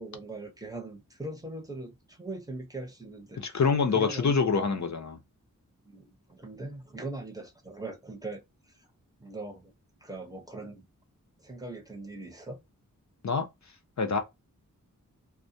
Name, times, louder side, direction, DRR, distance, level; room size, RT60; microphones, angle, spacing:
voice 1, 0.0-3.6 3.9-5.0 5.8-8.4 8.7-8.9 9.2-9.7 10.0-10.9 11.4-12.6, right 2 dB, 10° right, 0.8 m, -41 dB
voice 2, 3.4-5.2 13.2-13.5 14.0-14.2, left 5 dB, 55° left, 0.6 m, -26 dB
2.2 x 2.2 x 2.6 m
wide cardioid pair, 75°, 33 cm